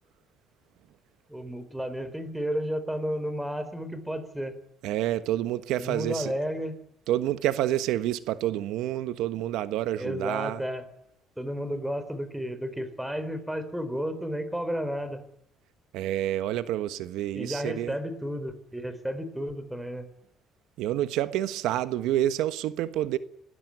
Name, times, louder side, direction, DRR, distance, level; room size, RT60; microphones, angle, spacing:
voice 1, 1.3-4.6 5.8-6.8 9.9-10.8 11.4-15.2 17.3-20.1, equal, 5° right, 4.0 m, -32 dB
voice 2, 4.8-6.3 7.1-10.6 15.9-17.9 20.8-23.2, right 13 dB, 85° right, 1.3 m, -28 dB
26.5 x 19.5 x 9.4 m
cardioid pair, 150°, 0 cm